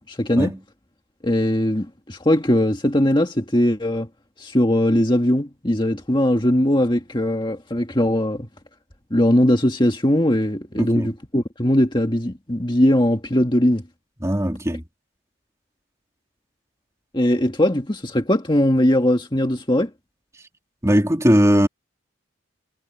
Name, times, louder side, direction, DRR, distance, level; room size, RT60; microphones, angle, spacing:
voice 1, 0.1-0.5 1.2-4.1 4.4-8.5 9.1-13.8 17.1-19.9, left 1 dB, 20° left, 1.9 m, -20 dB
voice 2, 10.8-11.1 14.2-14.8 20.8-21.7, equal, 15° right, 3.1 m, -19 dB
head